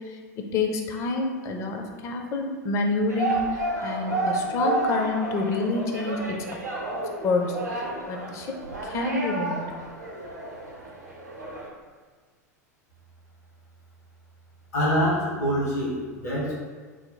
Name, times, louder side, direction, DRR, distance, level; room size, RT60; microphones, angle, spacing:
voice 1, 0.0-6.5 7.2-9.7, left 3 dB, 35° left, 3 dB, 0.5 m, -28 dB
sound 1, 3.1-11.7, right 2 dB, 80° right, 0.7 m, -31 dB
voice 2, 14.7-16.5, equal, 70° left, -6 dB, 1.1 m, -25 dB
3.2 x 2.2 x 3.8 m, 1.5 s
figure-of-eight pair, 85°, 9 cm